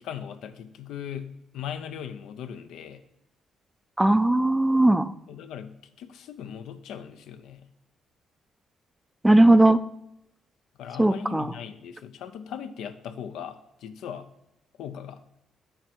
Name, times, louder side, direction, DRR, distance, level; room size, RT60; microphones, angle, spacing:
voice 1, 0.0-3.0 5.3-7.7 10.8-14.3 14.8-15.2, left 8 dB, 85° left, 10 dB, 0.6 m, -39 dB
voice 2, 4.0-5.1 9.2-9.8 11.0-11.5, right 1 dB, 10° right, 13 dB, 0.4 m, -18 dB
7.3 x 5.1 x 4.5 m, 0.84 s
cardioid pair, 90°, 0 cm